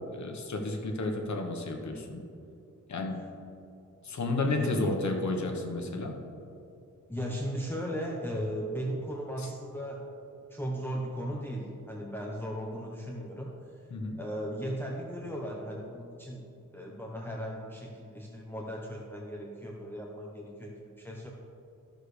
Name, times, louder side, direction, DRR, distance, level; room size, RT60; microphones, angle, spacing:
voice 1, 0.1-2.2 2.9-3.2 4.0-6.1 13.9-14.2, left 2 dB, 65° left, 3 dB, 1.2 m, -31 dB
voice 2, 7.1-10.1 10.5-13.8 14.1-16.5 16.7-21.3, equal, 5° left, -2 dB, 0.9 m, -37 dB
13.5 x 6.5 x 3.3 m, 2.7 s
wide cardioid pair, 115°, 31 cm